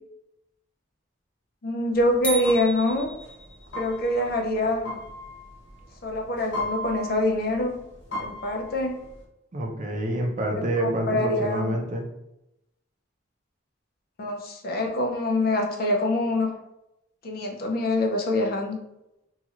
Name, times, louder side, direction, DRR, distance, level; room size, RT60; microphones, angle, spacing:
voice 1, 1.6-3.1 3.7-5.0 6.0-7.8 8.2-9.0 10.8-11.8 14.2-16.5 17.2-18.8, left 1 dB, 50° left, 2 dB, 0.5 m, -25 dB
sound 1, 1.9-9.2, left 1 dB, 75° left, 1.0 m, -37 dB
sound 2, 2.2-3.8, right 3 dB, 5° left, 0.6 m, -34 dB
voice 2, 9.5-12.0, right 1 dB, 40° right, 1 dB, 0.5 m, -27 dB
2.9 x 2.8 x 2.4 m, 0.87 s
head